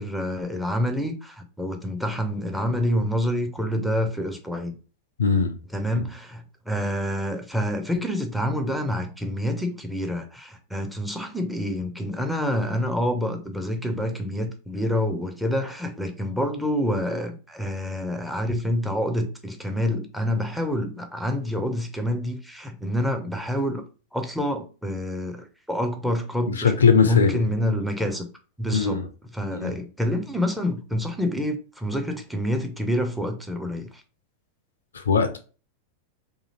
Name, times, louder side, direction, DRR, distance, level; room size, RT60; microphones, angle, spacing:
voice 1, 0.0-4.8 5.7-23.8 24.1-26.7 27.0-28.3 28.6-29.0 29.3-33.9, equal, ahead, 0.5 m, -27 dB
voice 2, 5.2-5.6 26.5-27.4 28.7-29.1 29.5-29.8 34.9-35.4, left 5 dB, 70° left, 0.4 m, -20 dB
2.8 x 2.5 x 2.8 m
figure-of-eight pair, 90°, 0 cm